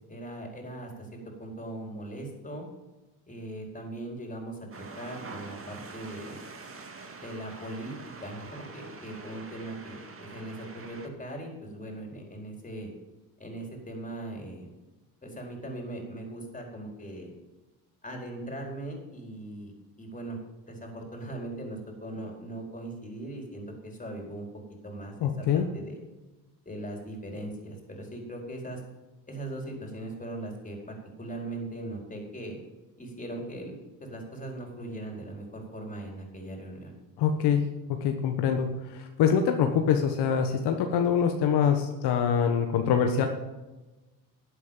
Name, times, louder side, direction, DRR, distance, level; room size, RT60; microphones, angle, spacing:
voice 1, 0.1-2.6 3.3-6.4 7.2-12.9 13.4-14.7 15.2-17.3 18.0-24.5 24.8-25.3 25.7-26.0 26.6-28.8 29.3-32.6 33.0-33.7 34.0-36.9, right 1 dB, 20° left, 1 dB, 4.6 m, -39 dB
sound 1, 4.7-11.1, right 4 dB, 30° right, 2.1 m, -45 dB
voice 2, 25.2-25.7 37.2-43.3, left 7 dB, 70° left, 4 dB, 1.4 m, -25 dB
12.0 x 8.2 x 7.4 m, 1.1 s
supercardioid pair, 85°, 42 cm